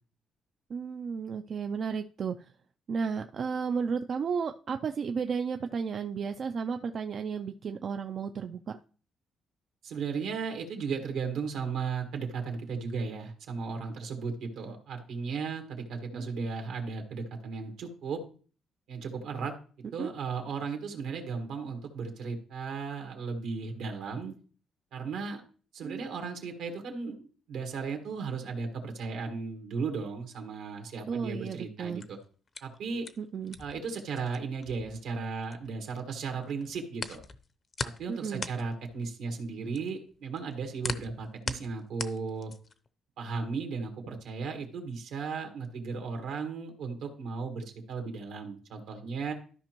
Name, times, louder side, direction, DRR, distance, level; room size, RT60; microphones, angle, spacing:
voice 1, 0.7-2.5 2.9-8.8 16.1-16.5 20.0-20.1 25.8-26.0 31.1-32.0 33.2-33.6 38.1-38.5, right 6 dB, 55° right, 0.4 m, -33 dB
voice 2, 9.8-18.2 18.9-19.5 19.9-24.3 24.9-25.4 25.7-32.2 32.6-33.1 33.6-37.2 37.8-42.5 43.2-49.3, right 5 dB, 85° right, 1.7 m, -35 dB
sound 1, 31.8-36.0 36.3-42.9, left 4 dB, 40° left, 0.6 m, -40 dB
13.0 x 5.1 x 3.0 m
cardioid pair, 90°, 0 cm